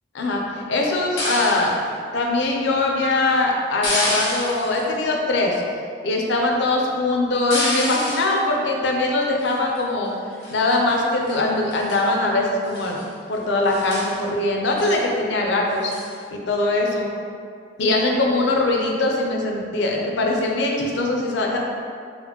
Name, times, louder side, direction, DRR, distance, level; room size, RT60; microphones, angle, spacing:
voice 1, 0.1-1.7 2.1-5.6 6.0-10.1 10.5-13.0 13.3-15.9 16.3-17.1 17.8-21.6, left 2 dB, 70° left, 0 dB, 0.5 m, -22 dB
sound 1, 1.2-1.8 3.8-4.8 7.5-8.4 9.4-9.8 10.4-11.0 11.3-11.4 11.7-12.1 12.6-13.0 13.3-13.4 13.7-14.2 14.8-15.0 15.9-16.1, left 1 dB, 85° left, 0.9 m, -28 dB
4.1 x 2.1 x 2.9 m, 2.2 s
head